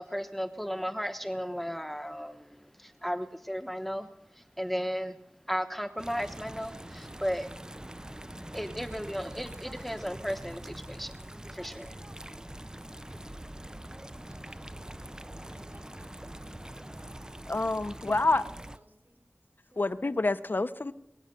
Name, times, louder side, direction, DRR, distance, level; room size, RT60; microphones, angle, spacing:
voice 1, 0.0-5.2 5.5-7.5 8.5-11.1 11.5-12.0, equal, 5° left, 1.0 m, -35 dB
sound 1, 6.0-18.8, right 1 dB, 15° right, 0.6 m, -44 dB
voice 2, 14.2-17.1 17.8-19.2 19.7-19.9, right 1 dB, 50° right, 4.1 m, -58 dB
voice 3, 17.5-18.4 19.8-20.9, left 2 dB, 55° left, 0.8 m, -27 dB
23.0 x 8.9 x 6.8 m
wide cardioid pair, 50°, 4 cm